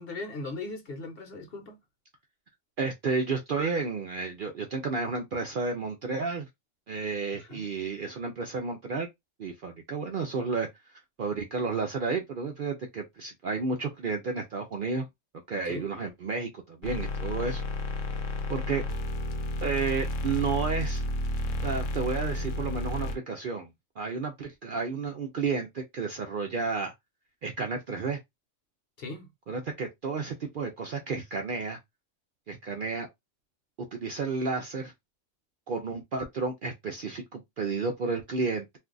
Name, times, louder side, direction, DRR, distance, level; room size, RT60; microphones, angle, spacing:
voice 1, 0.0-1.8 7.3-7.6 15.6-15.9 29.0-29.3, left 3 dB, 50° left, 1.0 m, -39 dB
voice 2, 2.8-6.5 6.9-9.1 9.4-15.1 15.5-17.6 18.5-18.8 19.6-21.0 21.6-26.9 27.4-28.2 29.5-31.8 32.5-33.1 33.9-34.9 35.7-38.8, right 4 dB, 60° right, 0.6 m, -32 dB
sound 1, 16.8-23.2, left 1 dB, 80° left, 1.0 m, -31 dB
2.6 x 2.3 x 3.7 m
omnidirectional pair, 1.3 m